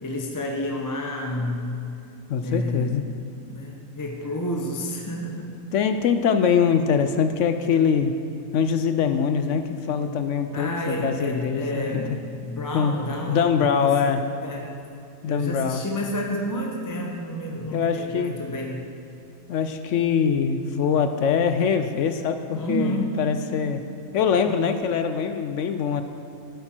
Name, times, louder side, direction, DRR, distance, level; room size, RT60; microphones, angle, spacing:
voice 1, 0.0-1.7 2.4-3.0 3.5-5.6 10.5-14.1 14.4-14.8 15.3-18.9 22.5-23.3 24.5-24.8, left 1 dB, 20° left, 1 dB, 0.6 m, -30 dB
voice 2, 2.3-3.1 5.7-8.1 8.5-12.0 12.7-13.0 13.3-14.2 15.2-15.8 17.7-18.3 19.5-23.8 24.1-26.0, left 7 dB, 70° left, 9 dB, 0.9 m, -23 dB
13.0 x 8.8 x 4.4 m, 2.6 s
omnidirectional pair, 1.4 m